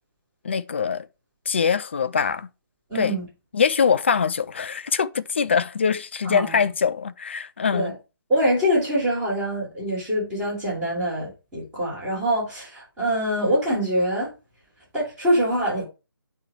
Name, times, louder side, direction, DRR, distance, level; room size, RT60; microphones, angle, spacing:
voice 1, 0.4-1.1 1.5-2.5 2.9-3.2 3.5-7.9, left 6 dB, 30° left, 0.3 m, -23 dB
voice 2, 2.9-3.3 6.3-6.6 7.7-7.9 8.3-14.3 14.9-15.8, equal, 10° right, 3.4 m, -24 dB
8.5 x 3.1 x 4.4 m
figure-of-eight pair, 150°, 12 cm